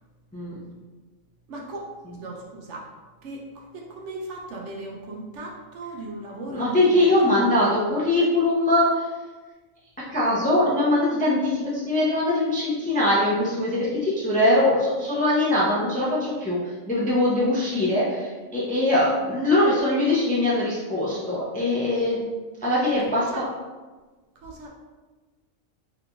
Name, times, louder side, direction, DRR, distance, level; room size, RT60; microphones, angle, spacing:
voice 1, 0.3-0.6 6.5-9.1 10.1-22.3 22.6-23.4, left 1 dB, 10° left, -7 dB, 0.3 m, -22 dB
voice 2, 1.5-1.9 2.2-2.9 3.2-7.1 23.3-23.4 24.4-24.7, right 2 dB, 70° right, -1 dB, 0.8 m, -37 dB
3.8 x 3.3 x 2.3 m, 1.3 s
omnidirectional pair, 1.4 m